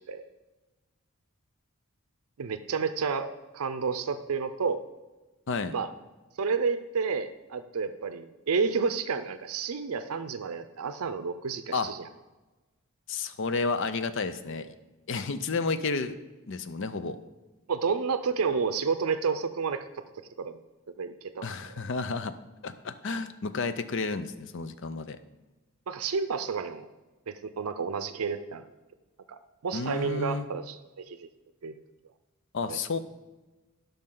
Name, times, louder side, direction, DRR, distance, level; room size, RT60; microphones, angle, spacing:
voice 1, 2.4-4.8 5.7-5.9 6.4-12.1 17.7-19.8 20.4-20.6 21.0-21.5 25.9-26.9 27.3-28.6 29.3-29.4 29.6-30.8 31.1-31.2 31.6-31.7 32.6-32.8, right 5 dB, 85° right, 10 dB, 0.5 m, -30 dB
voice 2, 13.1-14.7 15.1-16.2 16.5-17.2 21.4-22.3 22.6-25.2 29.7-30.5 32.5-33.0, left 4 dB, 60° left, 12 dB, 0.5 m, -31 dB
12.0 x 5.4 x 3.8 m, 1.2 s
head